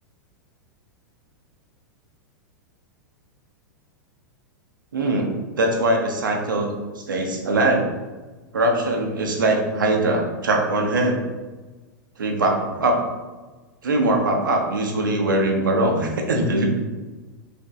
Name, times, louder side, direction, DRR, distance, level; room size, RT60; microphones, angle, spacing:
voice 1, 4.9-5.3 5.6-7.9 8.5-11.2 12.2-13.0 13.8-16.7, right 2 dB, 80° right, 2 dB, 1.4 m, -21 dB
5.3 x 5.3 x 3.7 m, 1.3 s
hypercardioid pair, 100°, 11 cm